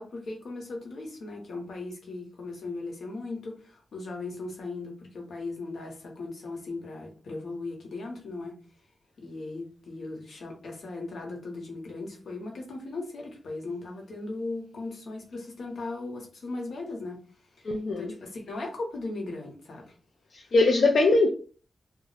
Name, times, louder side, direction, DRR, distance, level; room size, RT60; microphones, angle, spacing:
voice 1, 0.0-8.6 9.2-17.2 18.0-19.9, left 2 dB, 85° left, 0.9 m, -38 dB
voice 2, 17.6-18.1 20.3-21.3, left 3 dB, 60° left, 0.4 m, -22 dB
2.5 x 2.0 x 3.9 m
wide cardioid pair, 175°, 0 cm